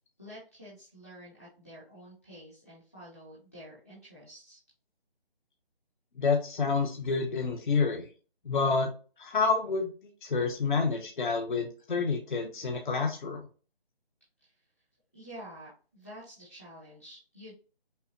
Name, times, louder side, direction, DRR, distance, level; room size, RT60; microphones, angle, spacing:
voice 1, 0.2-4.6 14.4-14.5 15.1-17.5, equal, 15° left, -10 dB, 0.6 m, -49 dB
voice 2, 6.2-8.1 8.4-8.9 9.2-13.5, left 4 dB, 50° left, 3 dB, 0.7 m, -28 dB
5.4 x 2.0 x 2.5 m, 0.36 s
figure-of-eight pair, 170°, 31 cm